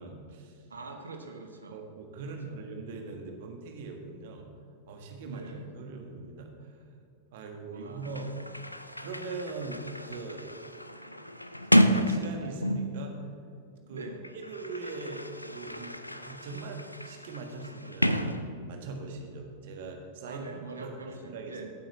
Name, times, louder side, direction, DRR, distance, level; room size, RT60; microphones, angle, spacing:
voice 1, 0.0-0.6 1.7-4.5 4.8-6.8 7.3-8.3 9.0-10.5 11.8-13.2 13.9-14.1 14.5-20.4 20.8-21.6, right 3 dB, 55° right, 3 dB, 1.6 m, -41 dB
voice 2, 0.7-1.8 2.2-2.6 5.2-5.7 7.7-8.3 13.9-14.2 20.3-21.7, right 3 dB, 75° right, 4 dB, 1.1 m, -44 dB
Sliding door, 7.7-7.8 8.0-13.1 14.0-19.0, equal, 90° left, 0.4 m, -31 dB
15.5 x 8.7 x 3.2 m, 2.5 s
figure-of-eight pair, 90°, 0 cm